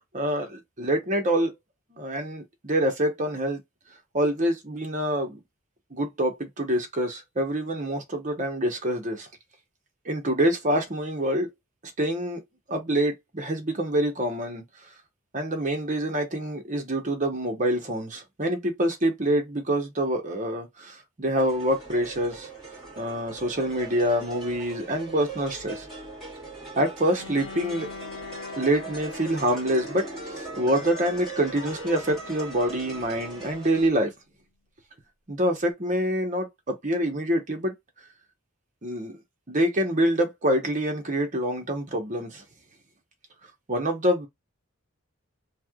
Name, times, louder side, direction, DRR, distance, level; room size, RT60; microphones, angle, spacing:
voice 1, 0.1-1.5 1.9-3.6 4.1-5.4 5.9-9.3 10.1-11.5 12.0-12.4 12.7-14.6 15.3-22.5 23.0-25.9 26.8-27.9 28.6-34.1 35.3-37.7 38.8-39.2 39.5-42.4 43.7-44.3, right 1 dB, 35° right, 0.9 m, -26 dB
sound 1, 21.3-33.9, right 3 dB, 5° left, 1.9 m, -40 dB
Bowed string instrument, 27.1-33.9, left 4 dB, 70° left, 0.7 m, -43 dB
3.2 x 2.8 x 2.3 m
head